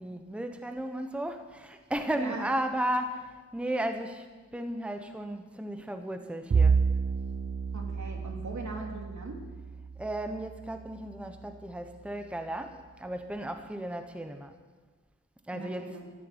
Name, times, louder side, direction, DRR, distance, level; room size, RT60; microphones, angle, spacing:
voice 1, 0.0-4.3 4.5-6.8 10.0-14.5 15.5-16.0, right 1 dB, 5° right, 7 dB, 1.1 m, -34 dB
Bowed string instrument, 6.5-11.1, right 5 dB, 35° right, 0.5 m, -30 dB
voice 2, 7.7-9.4 15.5-16.0, right 3 dB, 70° right, 1 dB, 3.0 m, -40 dB
13.5 x 11.0 x 8.2 m, 1.3 s
wide cardioid pair, 80°, 30 cm